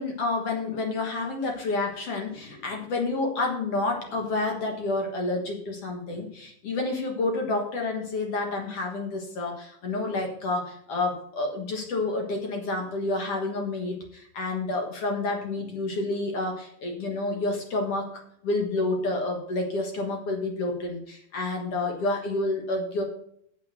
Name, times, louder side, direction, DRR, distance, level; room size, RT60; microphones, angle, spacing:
voice 1, 0.0-23.0, left 2 dB, 55° left, 2 dB, 1.8 m, -29 dB
8.5 x 7.6 x 6.7 m, 0.68 s
omnidirectional pair, 4.4 m